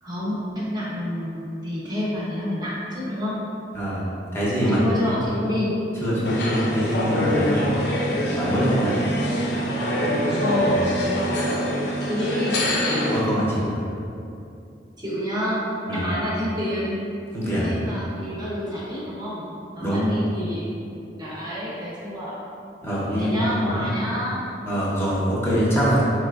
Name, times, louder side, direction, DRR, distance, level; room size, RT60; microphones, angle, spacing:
voice 1, 0.0-3.4 4.7-5.8 10.3-11.3 12.0-12.7 15.0-15.6 15.9-17.1 17.6-20.9 21.2-22.4 23.2-24.4, equal, 25° right, -7 dB, 0.7 m, -28 dB
voice 2, 4.3-5.1 6.0-7.7 8.4-9.0 10.6-10.8 13.1-13.8 15.9-16.0 17.3-17.7 19.8-20.1 22.8-23.8 24.7-26.0, equal, 15° left, -8 dB, 0.7 m, -24 dB
sound 1, 6.2-13.2, equal, 65° left, 0.5 m, -24 dB
4.0 x 3.2 x 2.3 m, 2.6 s
head